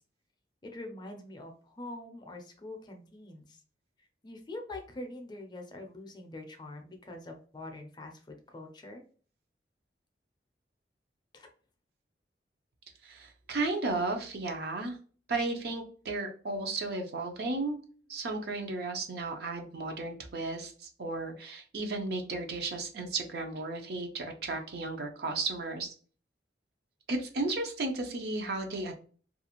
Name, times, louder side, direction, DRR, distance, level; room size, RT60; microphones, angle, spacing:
voice 1, 0.6-3.6 4.2-9.0 11.3-11.5, left 2 dB, 25° left, 3 dB, 0.5 m, -44 dB
voice 2, 13.0-15.0 15.3-17.8 18.1-25.9 27.1-29.0, right 3 dB, 60° right, 4 dB, 0.5 m, -34 dB
2.4 x 2.4 x 2.9 m, 0.41 s
head